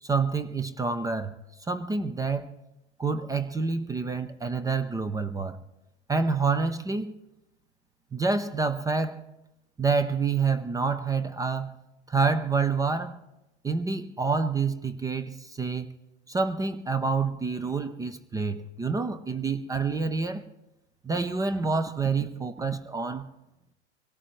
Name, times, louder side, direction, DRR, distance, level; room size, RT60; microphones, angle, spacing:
voice 1, 0.0-1.4 1.7-2.5 3.0-5.6 6.1-7.1 8.1-9.2 9.8-11.7 12.1-13.2 13.6-15.9 16.3-20.4 21.0-23.3, right 4 dB, 10° right, 0.5 m, -27 dB
24.0 x 17.5 x 3.1 m
hypercardioid pair, 100°, 34 cm